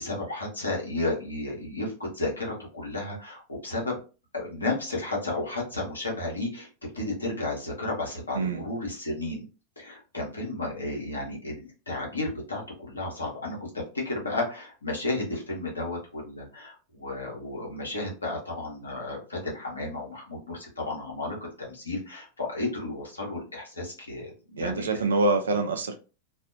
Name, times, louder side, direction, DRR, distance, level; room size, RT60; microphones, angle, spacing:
voice 1, 0.0-4.0 4.3-6.7 6.9-9.5 9.8-25.0, left 2 dB, 75° left, 1.0 m, -33 dB
voice 2, 24.6-25.9, right 2 dB, 65° right, 0.5 m, -25 dB
2.7 x 2.4 x 2.5 m
figure-of-eight pair, 90°, 0 cm